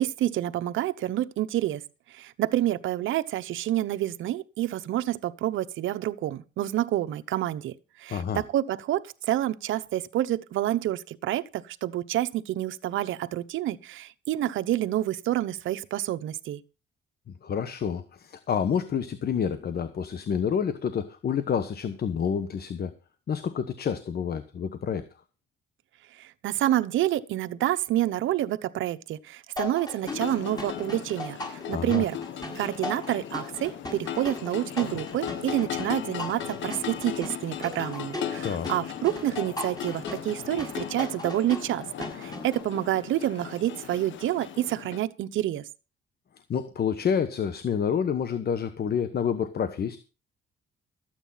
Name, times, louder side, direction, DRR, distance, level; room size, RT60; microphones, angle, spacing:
voice 1, 0.0-1.8 2.1-7.7 8.0-16.6 26.1-32.2 32.6-41.8 42.2-45.6, right 13 dB, 80° right, 0.9 m, -28 dB
voice 2, 8.1-8.4 17.4-22.9 23.3-25.0 31.7-32.0 38.4-38.7 46.5-50.0, left 7 dB, 55° left, 1.2 m, -28 dB
sound 1, 29.6-42.6, left 2 dB, 20° left, 6.0 m, -38 dB
sound 2, 30.0-45.0, left 10 dB, 70° left, 1.2 m, -37 dB
13.5 x 9.1 x 5.7 m
cardioid pair, 90°, 20 cm